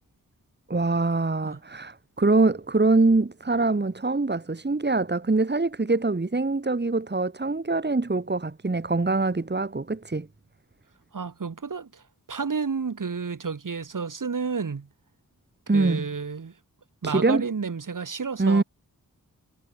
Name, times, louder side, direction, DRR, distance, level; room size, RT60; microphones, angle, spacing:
voice 1, 0.7-10.3 15.7-16.1 17.0-17.4 18.4-18.6, right 3 dB, 30° right, 2.6 m, -24 dB
voice 2, 11.1-12.0 12.3-14.9 15.7-16.5 17.0-18.6, right 5 dB, 65° right, 4.9 m, -31 dB
cardioid pair, 55°, 34 cm